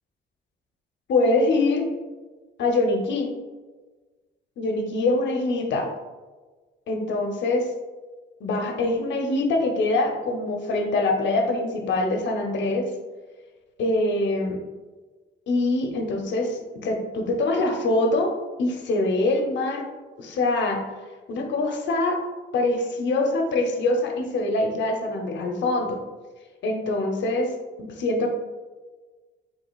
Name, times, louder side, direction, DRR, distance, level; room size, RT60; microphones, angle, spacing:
voice 1, 1.1-1.9 2.6-3.3 4.6-5.9 6.9-7.6 8.4-12.8 13.8-14.6 15.5-18.3 18.6-19.8 20.2-20.8 21.3-22.2 22.5-26.0 26.6-27.5 27.8-28.3, left 2 dB, 65° left, 3 dB, 0.8 m, -24 dB
4.9 x 3.8 x 2.4 m, 1.3 s
cardioid pair, 90°, 20 cm